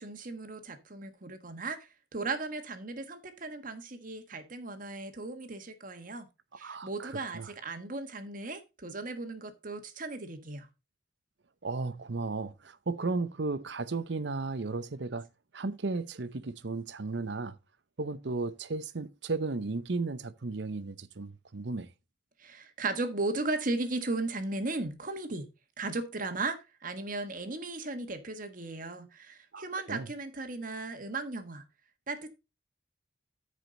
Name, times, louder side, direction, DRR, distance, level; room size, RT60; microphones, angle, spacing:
voice 1, 0.0-6.3 6.6-10.7 22.4-25.5 25.8-31.6 32.1-32.3, right 2 dB, 45° right, 1.4 m, -36 dB
voice 2, 6.6-7.5 11.6-15.3 15.5-17.5 18.0-21.9 29.5-29.6 29.9-30.1, right 3 dB, 65° right, 0.7 m, -34 dB
13.5 x 5.0 x 3.8 m
head